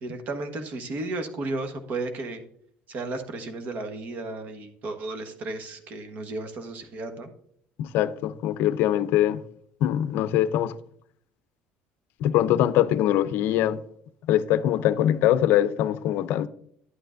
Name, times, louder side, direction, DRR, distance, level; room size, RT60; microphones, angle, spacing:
voice 1, 0.0-2.4 2.9-7.3, right 2 dB, 50° right, 1.2 m, -34 dB
voice 2, 7.8-9.4 9.8-10.7 12.2-13.8 14.3-16.5, left 12 dB, 70° left, 0.5 m, -22 dB
11.0 x 9.2 x 2.5 m
cardioid pair, 120°, 4 cm